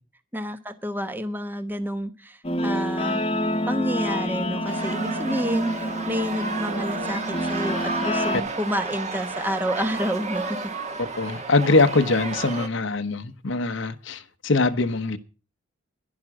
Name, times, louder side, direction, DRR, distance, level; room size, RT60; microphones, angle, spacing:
voice 1, 0.3-3.3 3.7-10.6 11.0-11.1, equal, 10° right, 1.0 m, -29 dB
Guitar, 2.4-8.4, equal, 30° left, 1.2 m, -27 dB
sound 1, 4.7-12.7, right 3 dB, 35° right, 1.6 m, -32 dB
voice 2, 11.2-15.2, left 3 dB, 65° left, 1.0 m, -22 dB
11.5 x 11.5 x 6.0 m
head